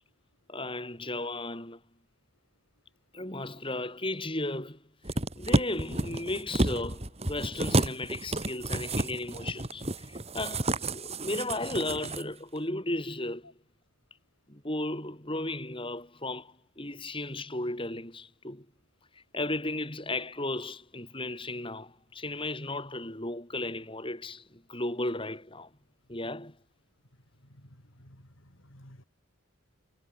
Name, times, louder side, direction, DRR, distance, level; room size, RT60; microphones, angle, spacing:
voice 1, 0.5-1.8 3.1-13.5 14.5-18.6 19.1-25.7 26.1-26.6, left 2 dB, 25° left, 5.1 m, -35 dB
sound 1, 5.0-12.2 12.6-12.7, right 1 dB, 30° right, 3.5 m, -30 dB
voice 2, 27.4-29.0, equal, 65° left, 6.1 m, -54 dB
head